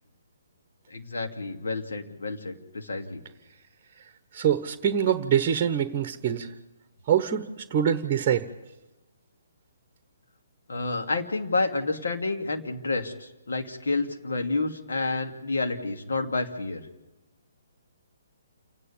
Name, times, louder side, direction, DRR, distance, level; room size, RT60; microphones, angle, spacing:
voice 1, 0.9-3.2 10.7-16.8, left 3 dB, 65° left, 4 dB, 2.6 m, -29 dB
voice 2, 4.3-6.5 7.1-8.5, right 9 dB, 30° right, 11 dB, 1.1 m, -24 dB
28.5 x 9.8 x 9.5 m, 1.0 s
figure-of-eight pair, 135°, 0 cm